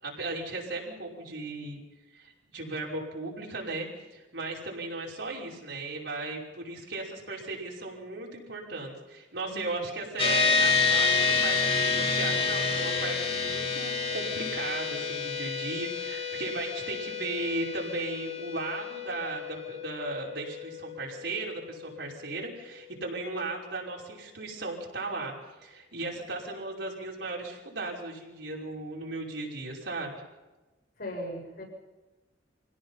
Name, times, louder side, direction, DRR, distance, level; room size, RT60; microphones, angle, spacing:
voice 1, 0.0-1.8 2.1-25.3 25.6-30.1, right 2 dB, 70° right, -2 dB, 5.5 m, -36 dB
voice 2, 9.4-9.8 31.0-31.6, equal, 55° left, 0 dB, 7.8 m, -38 dB
sound 1, 10.2-23.8, left 4 dB, 30° left, 2.6 m, -30 dB
26.0 x 17.5 x 5.8 m, 1.1 s
head